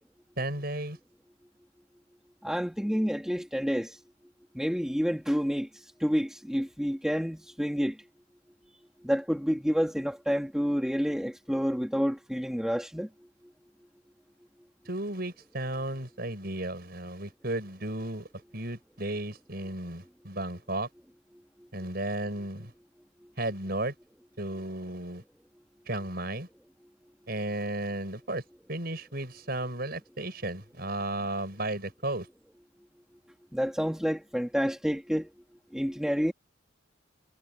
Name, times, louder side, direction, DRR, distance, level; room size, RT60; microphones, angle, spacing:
voice 1, 0.4-1.0 14.8-18.3 18.5-20.9 21.7-22.7 23.4-23.9 24.4-25.2 25.9-26.5 27.3-28.4 28.7-32.3, right 1 dB, 50° right, 6.7 m, -34 dB
voice 2, 2.4-4.0 4.5-5.7 6.0-8.0 9.0-13.1 33.5-35.3 35.7-36.3, equal, 5° right, 1.5 m, -29 dB
head